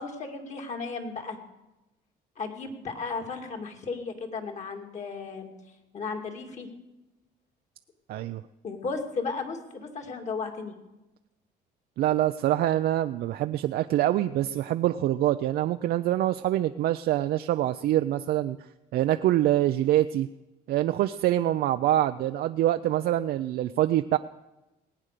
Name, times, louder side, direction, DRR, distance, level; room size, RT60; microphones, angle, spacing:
voice 1, 0.0-1.4 2.4-5.5 5.9-6.7 8.6-10.7, left 4 dB, 45° left, 4 dB, 2.3 m, -35 dB
voice 2, 8.1-8.4 12.0-18.6 18.9-20.3 20.7-24.2, right 13 dB, 65° right, 10 dB, 0.5 m, -25 dB
19.5 x 8.9 x 6.7 m, 1.0 s
cardioid pair, 110°, 17 cm